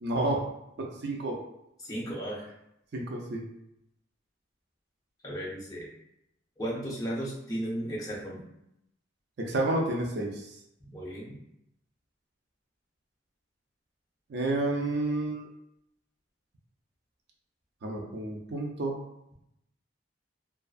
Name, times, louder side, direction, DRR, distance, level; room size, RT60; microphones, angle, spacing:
voice 1, 0.0-0.4 0.8-1.4 2.9-3.4 9.4-10.5 14.3-15.4 17.8-19.0, right 2 dB, 55° right, 0 dB, 0.4 m, -30 dB
voice 2, 1.8-2.5 5.2-5.9 6.6-8.4 10.8-11.3, right 1 dB, 20° left, -5 dB, 0.5 m, -35 dB
2.4 x 2.3 x 2.3 m, 0.81 s
head